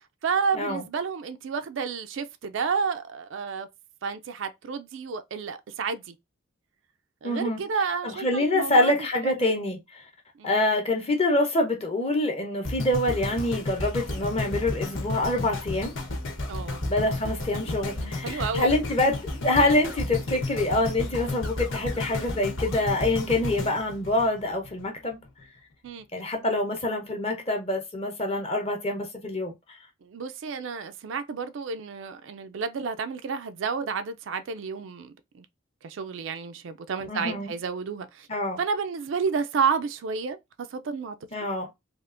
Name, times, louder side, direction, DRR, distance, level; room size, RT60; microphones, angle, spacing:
voice 1, 0.2-3.7 4.0-6.1 7.2-9.3 10.4-10.6 16.5-16.8 18.2-18.7 25.8-26.0 30.0-35.5 35.8-38.3 38.6-41.2, right 5 dB, 65° right, 0.4 m, -31 dB
voice 2, 7.2-7.6 8.0-10.0 10.4-15.9 16.9-25.2 26.1-29.8 37.1-37.5 38.3-38.6 41.3-41.7, left 1 dB, 30° left, 0.8 m, -26 dB
sound 1, 12.6-24.8 25.4-25.5, left 2 dB, 70° left, 1.0 m, -32 dB
3.5 x 2.4 x 2.5 m
head